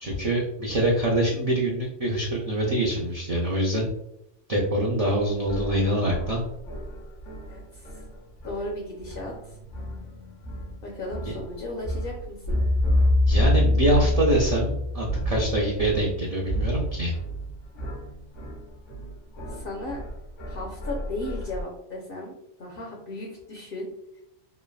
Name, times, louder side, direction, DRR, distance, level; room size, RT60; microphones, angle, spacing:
voice 1, 0.0-3.8 4.5-6.4 11.2-11.3 13.3-17.1, right 1 dB, 65° right, -3 dB, 0.3 m, -25 dB
sound 1, 5.1-8.8 9.0-21.6, left 1 dB, 85° left, 1.0 m, -28 dB
voice 2, 7.5-8.0 8.4-9.5 10.8-12.6 19.5-20.0 20.5-22.3 22.6-23.9, left 1 dB, 60° left, 0 dB, 0.7 m, -35 dB
3.2 x 2.1 x 2.3 m, 0.81 s
omnidirectional pair, 1.2 m